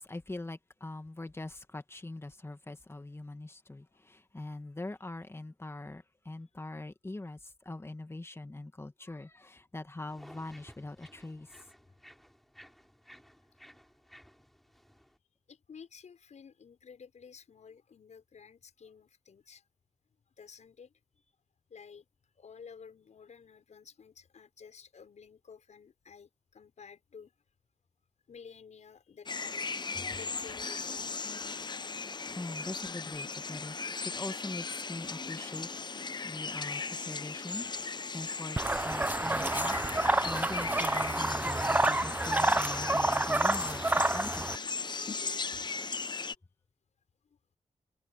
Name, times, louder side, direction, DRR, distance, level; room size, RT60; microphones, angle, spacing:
voice 1, 0.0-11.5 30.0-30.2 32.3-33.8 34.0-37.7 38.1-43.8 44.1-44.5, left 2 dB, 20° left, 1.8 m, -42 dB
sound 1, 10.1-15.2, equal, ahead, 7.3 m, -57 dB
voice 2, 15.5-19.6 20.4-20.9 21.7-22.0 22.4-27.3 28.3-29.7 30.2-31.1, left 6 dB, 75° left, 6.0 m, -52 dB
sound 2, 29.3-46.4, left 4 dB, 35° left, 0.7 m, -37 dB
sound 3, 38.6-44.6, right 2 dB, 15° right, 0.5 m, -29 dB
wide cardioid pair, 90°, 12 cm